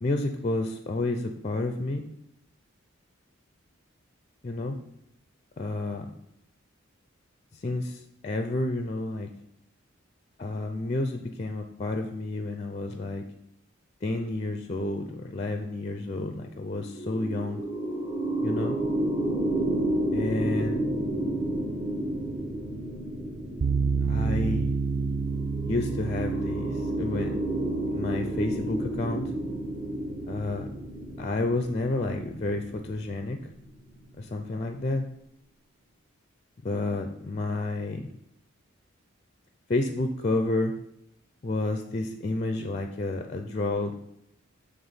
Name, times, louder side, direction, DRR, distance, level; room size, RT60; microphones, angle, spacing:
voice 1, 0.0-2.0 4.4-4.8 5.6-6.1 7.5-9.3 10.4-13.2 14.0-17.6 18.4-18.8 20.1-20.8 24.0-24.7 25.7-27.4 27.9-29.2 30.3-30.7 31.2-33.4 34.2-35.1 36.6-38.1 39.7-40.7 41.4-43.9, left 2 dB, 30° left, 6 dB, 0.4 m, -30 dB
sound 1, 16.7-34.1, right 1 dB, 25° right, 1.0 m, -31 dB
sound 2, 23.6-30.7, right 4 dB, 45° right, 0.3 m, -31 dB
6.9 x 3.4 x 5.5 m, 0.79 s
head